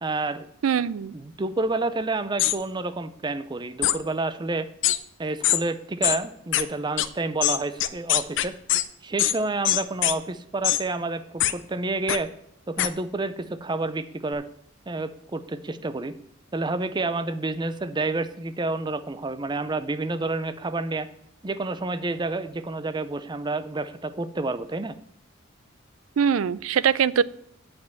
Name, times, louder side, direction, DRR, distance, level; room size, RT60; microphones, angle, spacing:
voice 1, 0.0-0.5 1.1-4.7 5.2-8.5 9.0-12.3 12.7-14.4 14.9-16.1 16.5-21.1 21.4-25.0, right 2 dB, 20° right, 12 dB, 0.5 m, -29 dB
voice 2, 0.6-1.1 26.2-27.2, right 7 dB, 80° right, 19 dB, 0.4 m, -22 dB
sound 1, 2.4-2.6 3.8-4.0 4.8-5.0 5.4-5.6 6.0-6.2 6.5-6.6 7.0-7.1 7.4-8.8 9.2-9.4 9.6-10.1 10.6-10.8 11.4-11.5 12.1-12.2 12.8-12.9, left 13 dB, 60° left, 0.5 m, -22 dB
8.4 x 5.2 x 6.9 m, 0.73 s
head